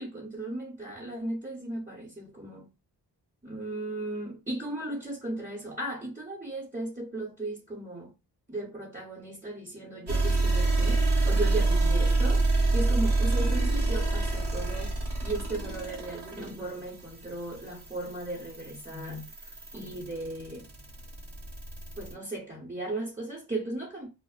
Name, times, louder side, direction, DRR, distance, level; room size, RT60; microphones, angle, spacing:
voice 1, 0.0-2.6 3.4-8.1 8.5-20.7 22.0-24.1, right 2 dB, 20° right, 0.9 m, -36 dB
sound 1, 10.1-22.1, right 2 dB, 75° right, 0.9 m, -28 dB
2.6 x 2.0 x 2.4 m
wide cardioid pair, 70°, 41 cm